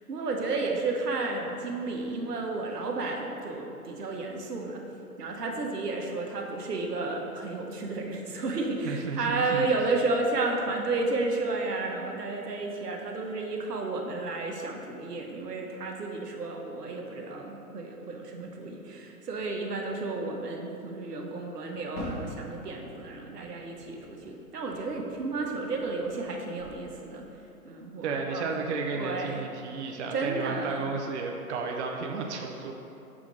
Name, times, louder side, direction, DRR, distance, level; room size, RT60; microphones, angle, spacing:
voice 1, 0.1-4.8 5.2-27.3 27.6-28.5 28.9-29.4 30.1-30.8, right 3 dB, 85° right, 1 dB, 1.1 m, -32 dB
voice 2, 8.8-9.7 28.0-32.7, right 4 dB, 50° right, 2 dB, 0.6 m, -33 dB
Fireworks, 21.9-26.3 26.6-27.4, left 1 dB, 5° left, 0.4 m, -44 dB
6.3 x 3.7 x 4.7 m, 2.8 s
hypercardioid pair, 140°, 46 cm